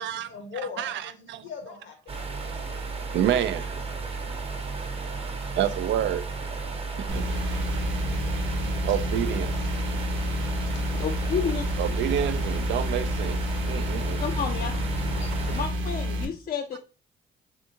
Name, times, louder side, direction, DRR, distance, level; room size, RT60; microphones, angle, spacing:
voice 1, 0.0-2.4 2.7-2.8 10.1-11.1 15.1-15.6, left 5 dB, 70° left, 1.0 m, -42 dB
voice 2, 0.8-1.4 3.1-3.8 4.4-4.5 5.6-6.3 7.0-7.3 8.9-9.5 11.8-14.2, right 10 dB, 70° right, 0.4 m, -28 dB
sound 1, 2.1-15.7, right 4 dB, 30° right, 0.8 m, -33 dB
sound 2, 7.1-16.3, left 1 dB, 85° right, 0.8 m, -29 dB
voice 3, 11.0-11.6 14.2-14.7 15.5-16.8, left 7 dB, 50° left, 0.5 m, -30 dB
3.6 x 3.5 x 2.7 m
cardioid pair, 90°, 20 cm